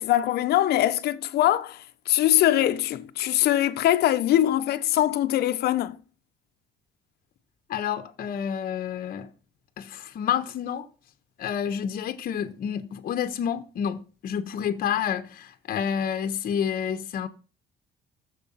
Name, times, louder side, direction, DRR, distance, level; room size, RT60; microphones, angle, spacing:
voice 1, 0.0-6.0, left 13 dB, 75° left, 1.0 m, -22 dB
voice 2, 7.7-9.3 9.8-10.9 11.4-17.3, left 8 dB, 55° left, 1.2 m, -29 dB
14.0 x 7.2 x 5.7 m
cardioid pair, 110°, 17 cm